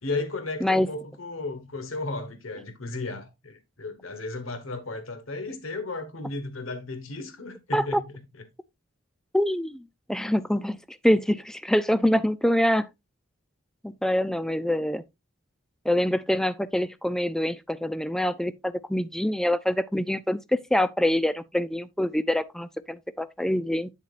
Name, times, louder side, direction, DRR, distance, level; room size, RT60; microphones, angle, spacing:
voice 1, 0.0-8.0, left 3 dB, 85° left, 1.4 m, -34 dB
voice 2, 0.6-0.9 7.7-8.0 9.3-9.8 10.1-12.9 13.8-15.0 15.8-23.9, left 1 dB, 5° left, 0.4 m, -25 dB
9.1 x 7.1 x 2.5 m
head